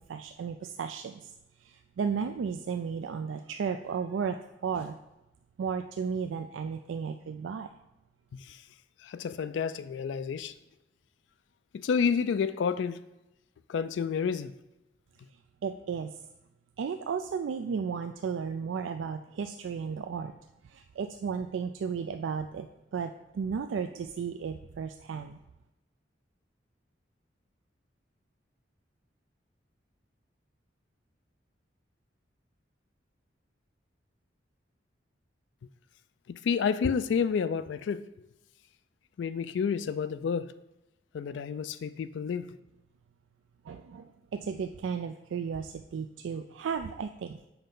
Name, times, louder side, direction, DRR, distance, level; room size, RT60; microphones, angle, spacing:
voice 1, 0.1-1.3 1.6-5.0 5.6-7.7 15.6-16.2 16.8-20.3 20.6-22.7 22.9-25.4 43.6-47.4, right 6 dB, 90° right, 0.3 m, -34 dB
voice 2, 9.0-10.5 11.7-13.0 13.7-14.5 36.3-38.3 39.2-40.5 41.1-42.6, left 6 dB, 75° left, 0.3 m, -30 dB
7.1 x 5.4 x 3.8 m
head